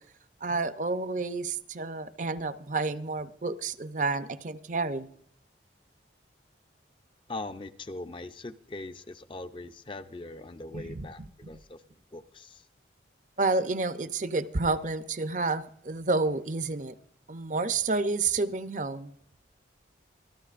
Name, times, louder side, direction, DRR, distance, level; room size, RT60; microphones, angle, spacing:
voice 1, 0.4-5.1 10.7-11.1 13.4-16.9 17.3-19.1, right 3 dB, 45° right, 0.6 m, -30 dB
voice 2, 7.3-11.8 12.1-12.6, left 2 dB, 25° left, 0.5 m, -41 dB
25.0 x 13.0 x 2.5 m
head